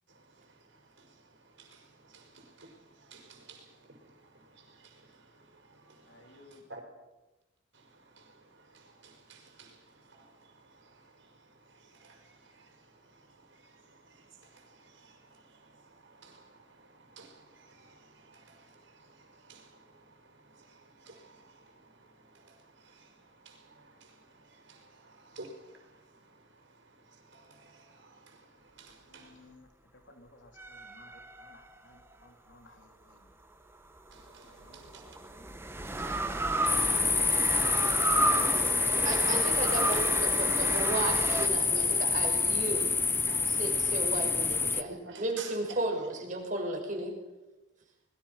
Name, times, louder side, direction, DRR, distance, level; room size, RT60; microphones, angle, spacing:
voice 1, 0.1-6.8 7.7-29.5 34.1-35.2 35.9-39.5 41.4-42.0 43.3-43.5 44.9-45.8, right 3 dB, 65° right, 5.6 m, -54 dB
voice 2, 6.1-6.6 29.1-29.7 30.1-33.3 34.4-34.9, left 2 dB, 65° left, 3.6 m, -58 dB
sound 1, 30.6-32.1 33.9-41.5, right 2 dB, 10° right, 1.4 m, -33 dB
sound 2, 36.7-44.8, left 4 dB, 10° left, 0.9 m, -27 dB
voice 3, 38.9-42.9 43.5-44.9 45.2-47.2, right 2 dB, 40° right, 5.9 m, -34 dB
26.5 x 21.5 x 5.9 m
head